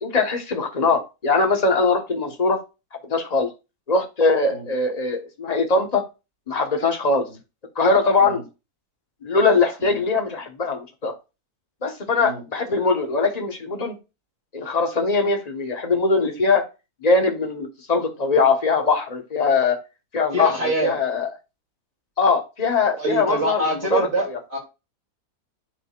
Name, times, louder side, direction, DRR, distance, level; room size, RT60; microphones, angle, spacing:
voice 1, 0.0-2.6 3.1-3.5 3.9-6.0 6.5-7.3 7.7-8.4 9.2-11.1 11.8-14.0 14.5-16.6 17.0-19.8 20.1-21.3 22.2-24.1, left 4 dB, 30° left, 4 dB, 1.2 m, -21 dB
voice 2, 20.3-20.9 23.0-24.6, right 1 dB, 45° right, -2 dB, 3.0 m, -25 dB
10.5 x 3.9 x 2.4 m, 0.27 s
omnidirectional pair, 1.6 m